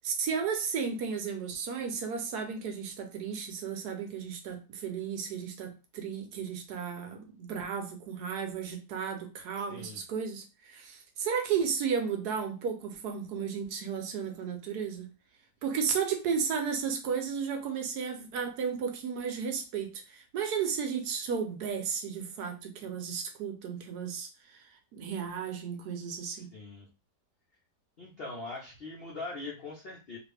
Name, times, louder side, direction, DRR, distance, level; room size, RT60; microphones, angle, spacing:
voice 1, 0.0-15.1 15.6-24.6 24.9-26.5, right 6 dB, 70° right, 1.1 m, -34 dB
voice 2, 9.7-10.0 26.3-26.9 28.0-30.2, left 3 dB, 65° left, 0.6 m, -41 dB
2.8 x 2.5 x 3.3 m
omnidirectional pair, 1.9 m